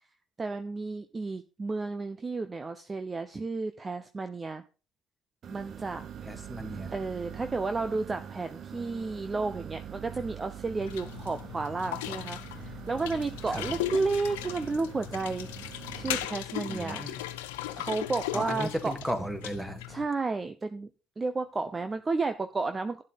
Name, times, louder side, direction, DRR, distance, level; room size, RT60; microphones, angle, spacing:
voice 1, 0.4-4.6 5.5-6.0 6.9-15.5 15.9-17.1 17.8-18.9 19.9-20.9 21.2-23.0, right 3 dB, 25° right, 9 dB, 0.9 m, -32 dB
sound 1, 5.4-16.3, right 9 dB, 45° right, 1.1 m, -44 dB
voice 2, 6.2-6.9 13.5-13.8 16.7-17.2 18.3-19.8, equal, 10° right, 6 dB, 2.3 m, -35 dB
sound 2, 10.8-20.0, left 13 dB, 75° left, 0.8 m, -38 dB
11.5 x 9.0 x 4.2 m, 0.33 s
figure-of-eight pair, 55°, 0 cm